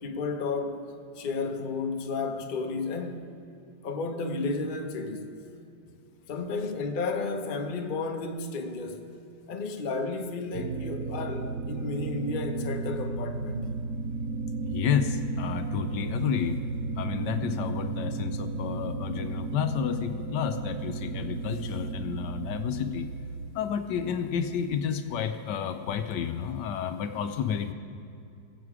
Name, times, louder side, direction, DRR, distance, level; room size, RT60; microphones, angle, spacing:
voice 1, 0.0-0.9 1.1-3.3 3.8-5.4 6.3-9.1 9.5-13.7, left 3 dB, 40° left, 0.8 m, -32 dB
sound 1, 10.5-23.5, right 4 dB, 65° right, 1.3 m, -34 dB
voice 2, 14.6-16.6 17.0-23.1 23.5-27.7, left 8 dB, 75° left, 1.2 m, -30 dB
21.5 x 7.6 x 4.9 m
omnidirectional pair, 2.0 m